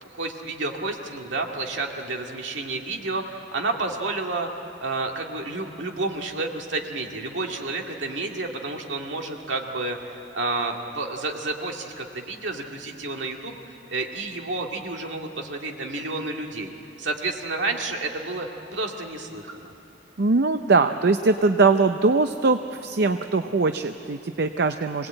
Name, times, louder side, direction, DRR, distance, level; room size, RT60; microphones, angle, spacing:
voice 1, 0.0-4.5 4.8-19.7, right 3 dB, 75° right, 2 dB, 2.1 m, -30 dB
voice 2, 20.2-25.1, right 3 dB, 60° right, 8 dB, 0.6 m, -21 dB
25.5 x 19.0 x 8.8 m, 2.9 s
head